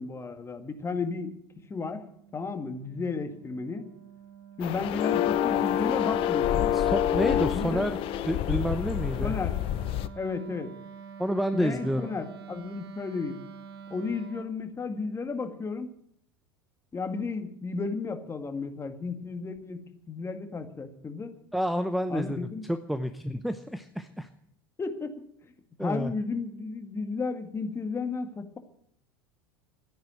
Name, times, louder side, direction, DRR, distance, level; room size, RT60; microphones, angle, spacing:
voice 1, 0.0-1.3 1.7-2.0 2.3-3.9 4.6-6.7 7.5-7.8 9.2-9.6 10.1-10.7 11.5-13.4 13.9-15.9 16.9-21.4 22.1-22.6 24.8-25.2 25.8-28.6, left 4 dB, 20° left, 8 dB, 1.9 m, -33 dB
Wind instrument woodwind instrument, 1.6-14.6, right 6 dB, 80° right, 2.0 m, -47 dB
sound 1, 4.6-10.1, left 11 dB, 45° left, 0.8 m, -27 dB
voice 2, 6.7-8.0 8.3-9.3 11.2-12.1 21.5-24.3 25.8-26.1, equal, ahead, 10 dB, 0.8 m, -29 dB
13.0 x 10.5 x 9.0 m, 0.68 s
hypercardioid pair, 80°, 13 cm